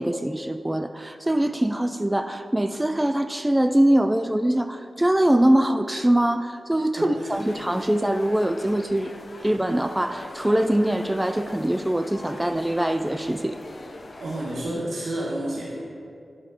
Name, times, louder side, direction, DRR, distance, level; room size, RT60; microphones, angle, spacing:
voice 1, 0.0-9.1 9.4-13.6, right 1 dB, 15° right, 9 dB, 0.3 m, -23 dB
voice 2, 7.0-7.4 14.2-15.7, right 1 dB, 80° right, -5 dB, 1.2 m, -30 dB
sound 1, 7.3-14.6, left 2 dB, 50° left, 0.6 m, -41 dB
8.9 x 4.4 x 4.8 m, 2.4 s
cardioid pair, 45°, 0 cm